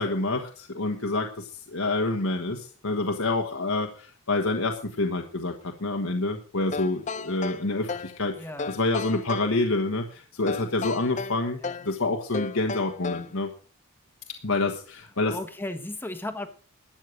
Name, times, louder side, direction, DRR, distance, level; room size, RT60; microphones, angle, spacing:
voice 1, 0.0-8.3 8.7-13.5 14.4-15.4, left 2 dB, 80° left, 3 dB, 1.4 m, -27 dB
sound 1, 6.7-8.2 8.6-9.5 10.5-11.9 12.3-13.4, left 4 dB, 35° left, 0.6 m, -34 dB
voice 2, 8.4-8.8 11.6-11.8 15.3-16.5, left 1 dB, 10° left, 8 dB, 1.2 m, -35 dB
13.0 x 8.6 x 6.3 m, 0.41 s
head